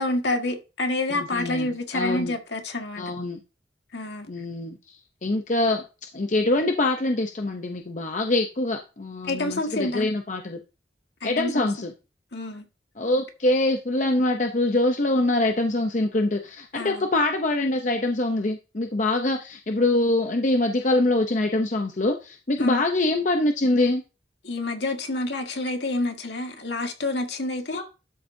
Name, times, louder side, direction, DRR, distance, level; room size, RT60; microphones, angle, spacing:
voice 1, 0.0-3.0 3.9-4.3 9.2-10.1 11.2-11.7 12.3-12.7 16.7-17.1 22.6-22.8 24.4-27.8, left 2 dB, 70° left, 1.8 m, -28 dB
voice 2, 1.1-1.7 1.9-2.3 3.0-3.4 4.3-5.8 6.1-10.6 11.2-11.9 13.0-24.0 27.7-27.8, left 2 dB, 45° left, 0.7 m, -24 dB
12.5 x 7.0 x 2.7 m
head